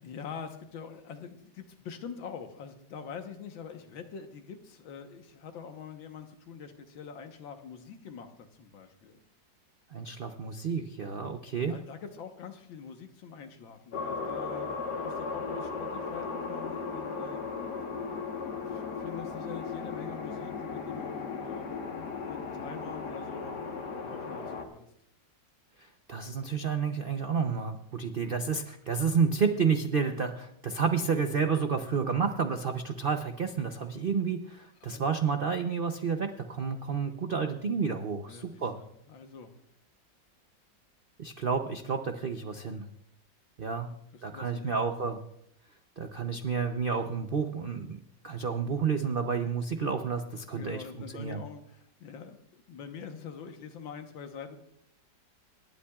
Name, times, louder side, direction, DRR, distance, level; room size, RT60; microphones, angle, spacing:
voice 1, 0.0-9.2 11.5-17.4 18.2-23.6 24.0-24.9 34.8-35.1 38.3-39.6 43.8-44.9 50.5-54.6, left 6 dB, 90° left, 6 dB, 1.9 m, -45 dB
voice 2, 9.9-11.8 26.1-38.8 41.2-42.9 43.6-43.9 44.2-45.2 46.0-50.8 51.1-51.4, right 5 dB, 90° right, 6 dB, 0.4 m, -30 dB
sound 1, 13.9-24.6, left 5 dB, 60° left, 1.9 m, -36 dB
28.0 x 11.5 x 2.4 m, 0.74 s
omnidirectional pair, 2.0 m